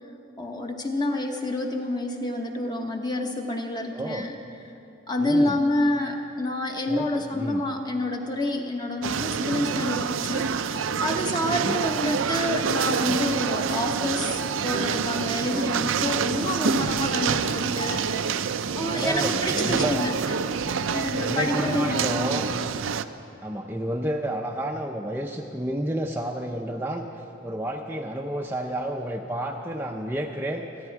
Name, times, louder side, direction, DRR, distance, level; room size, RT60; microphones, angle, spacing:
voice 1, 0.4-4.3 5.1-20.1 20.9-22.3, left 1 dB, 20° left, 3 dB, 1.1 m, -28 dB
voice 2, 3.9-4.3 5.2-5.6 6.9-7.6 11.4-11.8 18.8-20.1 21.2-22.5 23.4-30.9, right 1 dB, 10° right, 1 dB, 0.6 m, -31 dB
sound 1, 9.0-23.0, right 6 dB, 75° right, 0.5 m, -27 dB
27.0 x 10.0 x 4.7 m, 2.8 s
head